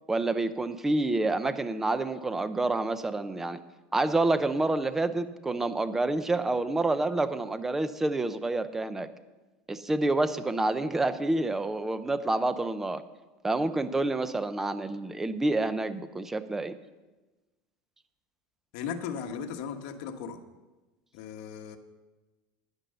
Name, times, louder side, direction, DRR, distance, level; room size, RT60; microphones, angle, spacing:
voice 1, 0.1-3.6 3.9-9.1 9.7-13.0 13.4-16.7, right 2 dB, 10° right, 13 dB, 0.5 m, -28 dB
voice 2, 18.7-20.4 21.1-21.8, left 7 dB, 65° left, 5 dB, 1.2 m, -37 dB
10.0 x 9.8 x 6.7 m, 1.2 s
cardioid pair, 160°, 4 cm